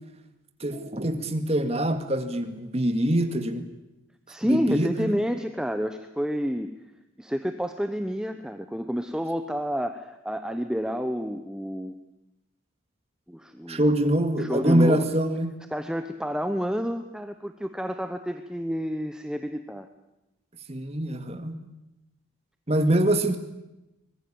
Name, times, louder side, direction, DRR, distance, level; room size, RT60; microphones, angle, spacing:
voice 1, 0.6-3.7 4.4-5.2 13.7-15.5 20.7-21.6 22.7-23.4, right 1 dB, 30° right, 8 dB, 2.0 m, -24 dB
voice 2, 4.3-6.7 7.2-11.9 13.3-13.8 14.4-15.0 15.7-19.9, equal, 5° right, 8 dB, 0.9 m, -29 dB
24.5 x 20.5 x 8.8 m, 0.95 s
head